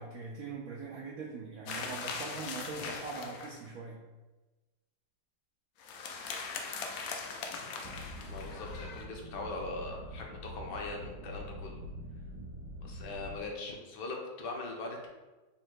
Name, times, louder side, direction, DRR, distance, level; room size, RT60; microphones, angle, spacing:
voice 1, 0.0-4.0, right 4 dB, 90° right, -2 dB, 0.7 m, -42 dB
sound 1, 1.7-3.7 5.8-9.1, left 5 dB, 85° left, 0.7 m, -40 dB
sound 2, 7.8-13.4, left 1 dB, 75° right, 1.1 m, -45 dB
voice 2, 8.3-11.8 12.8-15.1, left 2 dB, 70° left, 1 dB, 1.2 m, -41 dB
4.3 x 2.1 x 4.5 m, 1.2 s
omnidirectional pair, 2.1 m